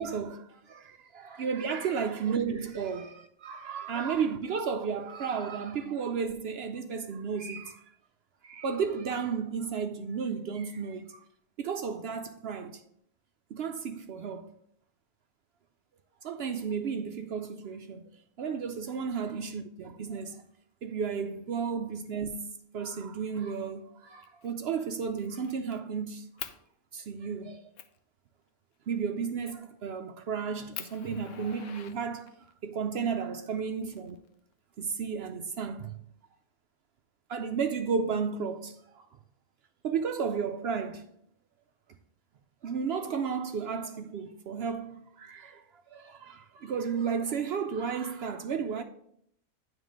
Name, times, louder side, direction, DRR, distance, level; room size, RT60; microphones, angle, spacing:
voice 1, 0.0-7.8 8.4-11.2 11.6-12.8 13.5-14.5 16.2-18.0 18.4-20.4 20.8-22.4 22.7-26.5 26.9-27.6 28.9-32.4 32.6-34.2 34.8-36.0 37.3-39.1 39.8-41.1 42.6-45.6 45.9-48.8, right 6 dB, 65° right, 0.6 m, -33 dB
Fire, 24.2-24.5 24.9-25.8 26.4-26.6 27.2-27.3 27.8-28.0 29.4-29.7 30.2-30.3 30.7-32.5 33.6-34.5, left 10 dB, 70° left, 0.9 m, -44 dB
9.1 x 3.2 x 6.2 m
omnidirectional pair, 1.5 m